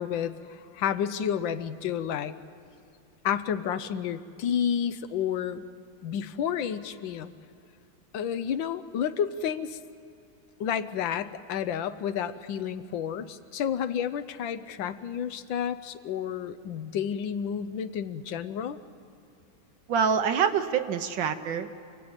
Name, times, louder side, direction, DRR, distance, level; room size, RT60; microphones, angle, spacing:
voice 1, 0.0-2.3 3.2-5.6 6.0-7.3 8.1-9.8 10.6-18.8, left 8 dB, 75° left, 12 dB, 1.5 m, -30 dB
voice 2, 19.9-21.7, right 7 dB, 70° right, 8 dB, 1.7 m, -26 dB
28.0 x 18.0 x 8.9 m, 2.5 s
omnidirectional pair, 2.2 m